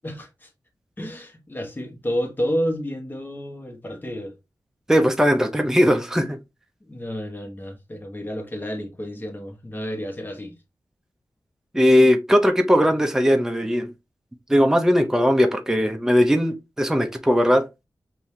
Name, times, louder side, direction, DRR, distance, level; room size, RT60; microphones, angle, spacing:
voice 1, 0.0-0.5 1.0-4.3 6.8-10.5, equal, 25° left, 1.3 m, -30 dB
voice 2, 4.9-6.4 11.7-13.9 14.5-17.6, equal, 5° right, 0.7 m, -19 dB
5.4 x 2.7 x 3.2 m
wide cardioid pair, 75°, 8 cm